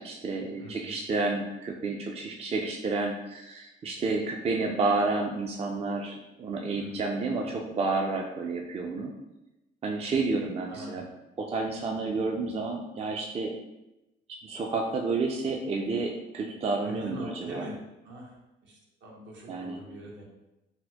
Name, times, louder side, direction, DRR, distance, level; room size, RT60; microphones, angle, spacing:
voice 1, 0.0-9.1 9.8-11.1 11.4-13.5 14.4-17.6 19.5-19.8, right 3 dB, 30° right, 1 dB, 0.4 m, -30 dB
voice 2, 0.6-0.9 6.8-7.1 10.7-11.1 16.8-17.8 18.0-20.2, right 1 dB, 70° right, -2 dB, 1.0 m, -43 dB
4.1 x 2.1 x 2.8 m, 0.96 s
cardioid pair, 90°, 20 cm